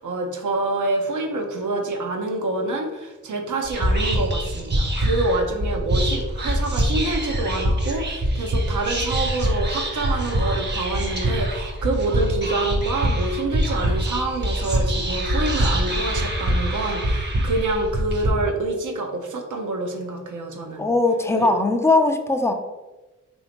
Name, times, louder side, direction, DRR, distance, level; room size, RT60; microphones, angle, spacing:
voice 1, 0.0-20.9 21.4-21.5, right 2 dB, 65° right, 3 dB, 0.7 m, -27 dB
Whispering, 3.6-18.3, right 1 dB, 35° right, 0.8 m, -24 dB
voice 2, 20.8-22.5, left 2 dB, 10° left, 4 dB, 0.4 m, -19 dB
3.2 x 2.6 x 2.9 m, 1.1 s
cardioid pair, 50°, 32 cm